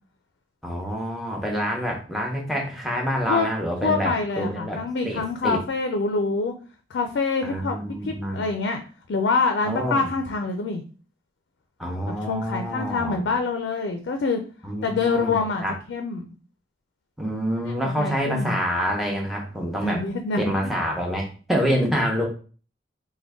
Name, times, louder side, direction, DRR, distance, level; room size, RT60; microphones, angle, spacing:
voice 1, 0.6-5.6 7.4-8.5 9.6-10.1 11.8-13.2 14.6-15.4 15.6-15.7 17.2-20.0 20.4-22.3, equal, ahead, -1 dB, 0.7 m, -27 dB
voice 2, 3.8-6.5 6.9-7.7 8.0-8.8 9.1-10.8 12.1-14.4 14.8-16.3 18.0-18.6 19.8-20.7, left 4 dB, 90° left, 5 dB, 0.4 m, -26 dB
3.7 x 2.1 x 3.5 m, 0.39 s
head